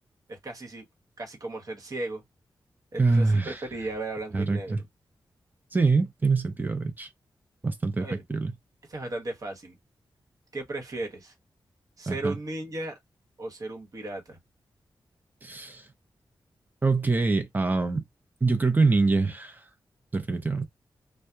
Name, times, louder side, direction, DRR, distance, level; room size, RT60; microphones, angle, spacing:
voice 1, 0.3-0.8 1.2-2.2 2.9-4.9 8.0-8.2 8.9-9.8 10.5-11.3 12.0-12.9 13.4-14.4, right 2 dB, 45° right, 1.1 m, -35 dB
voice 2, 3.0-3.6 4.3-4.8 5.7-7.1 7.6-8.5 12.1-12.4 15.4-15.8 16.8-18.0 18.4-19.6 20.1-20.6, right 3 dB, 20° right, 0.6 m, -24 dB
2.7 x 2.0 x 2.3 m
wide cardioid pair, 155°, 8 cm